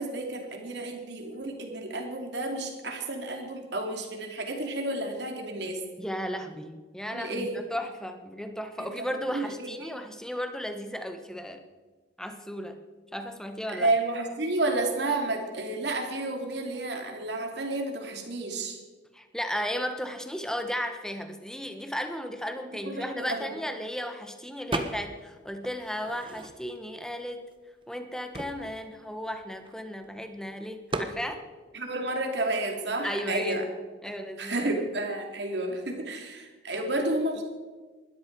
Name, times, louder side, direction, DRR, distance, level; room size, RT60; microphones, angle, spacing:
voice 1, 0.0-5.8 7.1-7.6 8.8-9.9 13.7-18.8 22.8-23.5 31.7-33.6 34.1-37.4, right 2 dB, 65° right, 3 dB, 2.8 m, -31 dB
voice 2, 6.0-11.6 12.2-12.8 13.1-13.9 19.1-27.4 27.9-31.4 33.0-33.6 34.0-34.7 36.7-36.9, equal, 5° left, 6 dB, 1.2 m, -35 dB
sound 1, 24.7-25.3 25.6-26.9 27.5-27.6 27.8-30.1 30.9-31.2, right 2 dB, 25° right, 1.1 m, -35 dB
20.0 x 13.5 x 4.7 m, 1.3 s
head